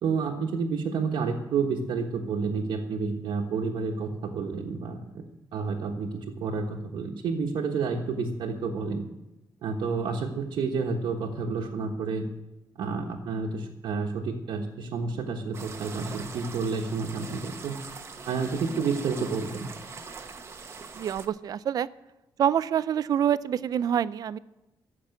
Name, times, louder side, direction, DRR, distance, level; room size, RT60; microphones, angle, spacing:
voice 1, 0.0-5.2 5.5-9.0 9.6-12.3 12.8-17.8 18.3-19.7, right 5 dB, 70° right, -1 dB, 1.3 m, -30 dB
sound 1, 15.5-21.3, right 4 dB, 30° right, 0.9 m, -42 dB
voice 2, 20.9-21.9 22.4-24.4, right 9 dB, 50° right, 17 dB, 0.4 m, -26 dB
14.0 x 6.0 x 9.2 m, 0.96 s
wide cardioid pair, 160°, 8 cm